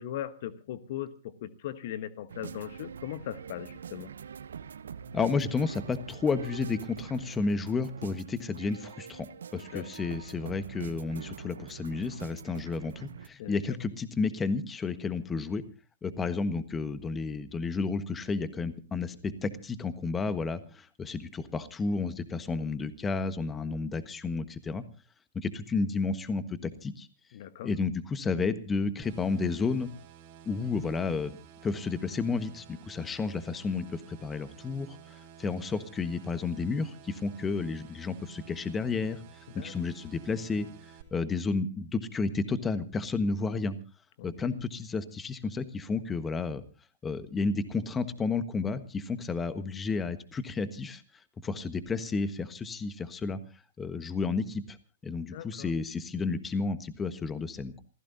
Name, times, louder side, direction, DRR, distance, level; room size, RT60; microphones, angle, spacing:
voice 1, 0.0-4.1 9.5-9.9 13.4-13.6 27.3-27.7 39.5-39.7 44.2-44.3 55.3-55.7, left 11 dB, 55° left, 13 dB, 1.2 m, -39 dB
sound 1, 2.3-13.3, right 7 dB, 75° right, 0.8 m, -44 dB
voice 2, 5.1-9.3 9.5-15.6 16.0-24.8 25.3-27.1 27.6-29.9 30.4-31.4 31.6-39.2 39.5-40.7 41.1-43.8 44.2-46.6 47.0-51.0 51.4-53.4 53.8-54.8 55.0-57.8, left 4 dB, 15° left, 12 dB, 1.4 m, -31 dB
sound 2, 29.0-41.0, right 9 dB, 45° right, 3.3 m, -52 dB
27.5 x 15.5 x 2.7 m, 0.33 s
hypercardioid pair, 115°, 0 cm